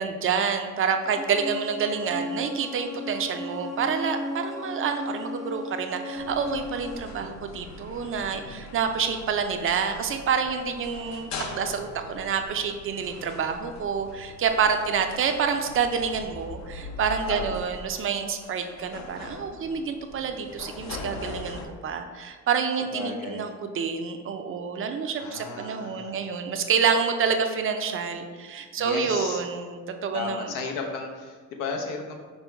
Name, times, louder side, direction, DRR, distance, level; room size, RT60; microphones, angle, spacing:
voice 1, 0.0-30.5, right 6 dB, 40° right, 6 dB, 0.4 m, -28 dB
sound 1, 1.0-7.0, left 1 dB, ahead, 0.6 m, -35 dB
sound 2, 6.2-21.7, left 2 dB, 55° left, 0.6 m, -41 dB
voice 2, 8.3-8.7 17.3-17.6 22.9-23.5 25.1-26.2 28.8-29.5 30.1-32.2, left 4 dB, 90° left, 2 dB, 0.8 m, -34 dB
5.4 x 2.1 x 4.4 m, 1.5 s
cardioid pair, 110°, 32 cm